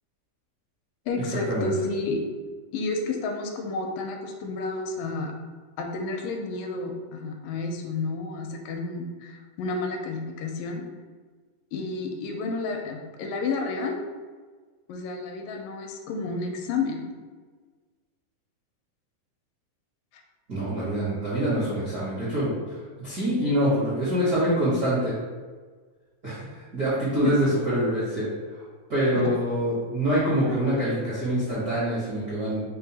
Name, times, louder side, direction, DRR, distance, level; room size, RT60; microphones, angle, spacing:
voice 1, 1.1-2.2 2.7-5.3 5.8-10.9 11.7-14.0 14.9-17.0 27.2-27.3 29.1-29.3, left 3 dB, 85° left, 3 dB, 2.2 m, -31 dB
voice 2, 20.5-25.2 26.2-28.6 28.9-32.6, equal, 60° right, -11 dB, 0.9 m, -25 dB
5.4 x 2.1 x 4.0 m, 1.4 s
omnidirectional pair, 3.9 m